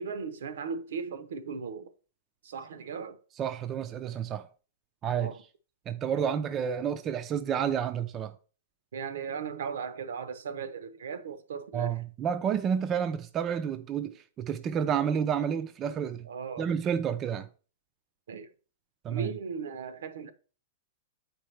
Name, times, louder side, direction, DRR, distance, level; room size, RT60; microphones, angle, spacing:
voice 1, 0.0-1.9 2.4-3.2 5.2-5.4 6.1-6.3 8.9-12.0 16.2-16.7 18.3-18.5 19.1-20.3, right 6 dB, 80° right, 0.8 m, -37 dB
voice 2, 3.4-4.5 5.0-5.3 5.9-8.3 11.7-16.3 16.6-17.5 19.0-19.3, right 8 dB, 20° right, 0.4 m, -30 dB
8.4 x 4.5 x 3.3 m
hypercardioid pair, 155°, 0 cm